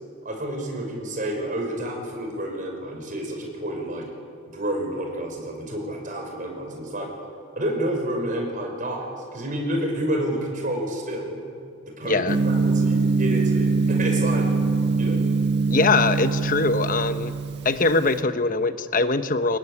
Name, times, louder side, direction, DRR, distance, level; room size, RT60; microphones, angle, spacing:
voice 1, 0.2-4.1 4.5-7.1 7.5-11.4 11.8-14.5 15.0-15.2, right 1 dB, 40° right, 2 dB, 5.8 m, -29 dB
voice 2, 12.0-12.4 15.7-17.3 17.6-19.6, left 3 dB, 40° left, 10 dB, 1.0 m, -22 dB
Gong, 12.3-18.1, right 4 dB, 55° right, 1.6 m, -23 dB
24.5 x 20.0 x 9.9 m, 2.3 s
head